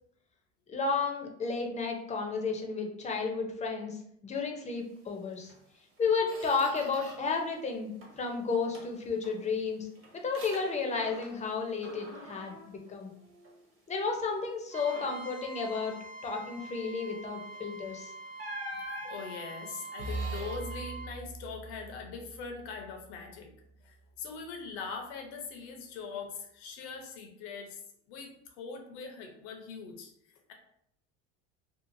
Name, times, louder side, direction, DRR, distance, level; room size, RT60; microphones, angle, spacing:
voice 1, 0.7-5.5 6.0-9.9 10.1-13.1 13.9-15.9 16.2-18.1, left 4 dB, 20° left, 2 dB, 0.6 m, -32 dB
Squeak, 5.5-5.6 6.0-7.4 7.7-8.3 8.7-11.5 11.8-13.7 14.1-14.3 14.7-15.4 17.5-17.7 18.4-20.6, equal, 40° right, 1.2 m, -46 dB
Trumpet, 14.7-21.1, right 3 dB, 25° right, 0.6 m, -45 dB
voice 2, 18.7-23.5 23.8-27.8 28.1-30.1, left 5 dB, 80° left, 3 dB, 0.8 m, -42 dB
Bowed string instrument, 20.0-24.2, right 2 dB, 70° right, 0.5 m, -42 dB
2.8 x 2.4 x 2.6 m, 0.74 s
supercardioid pair, 105°, 33 cm